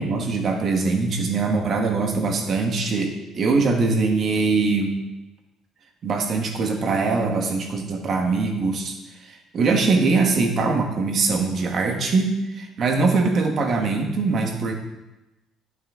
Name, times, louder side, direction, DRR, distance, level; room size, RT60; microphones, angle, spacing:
voice 1, 0.0-4.9 6.0-8.9 9.3-14.7, right 4 dB, 35° right, 4 dB, 1.3 m, -22 dB
11.0 x 9.7 x 3.6 m, 1.0 s
cardioid pair, 165°, 0 cm